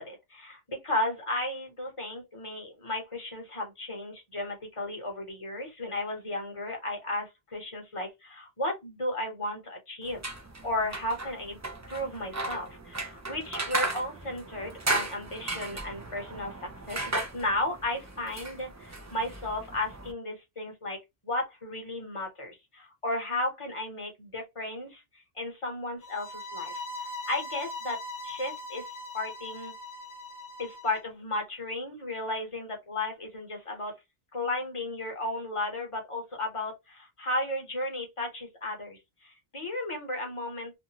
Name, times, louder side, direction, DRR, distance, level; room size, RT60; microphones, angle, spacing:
voice 1, 0.0-10.2 10.6-11.6 11.9-16.5 16.9-21.0 21.2-25.0 25.4-28.0 28.2-28.8 29.1-29.7 30.6-33.9 34.3-40.7, left 1 dB, 30° left, 1.0 m, -34 dB
sound 1, 10.0-20.1, right 2 dB, 30° right, 0.3 m, -36 dB
sound 2, 26.0-31.0, left 2 dB, 45° left, 0.7 m, -40 dB
2.6 x 2.5 x 2.8 m
omnidirectional pair, 1.0 m